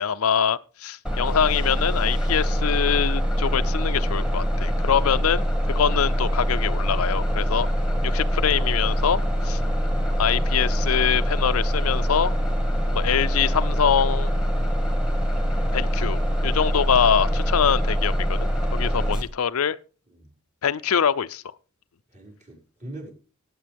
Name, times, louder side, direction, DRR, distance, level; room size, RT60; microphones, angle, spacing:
voice 1, 0.0-7.7 8.0-9.2 9.4-9.6 10.2-12.3 12.9-14.3 15.7-19.8 20.6-21.4, left 8 dB, 90° left, 0.5 m, -24 dB
Bus, 1.0-19.2, equal, 5° right, 1.9 m, -24 dB
voice 2, 22.1-23.1, right 1 dB, 35° right, 5.4 m, -42 dB
19.0 x 8.7 x 3.5 m
head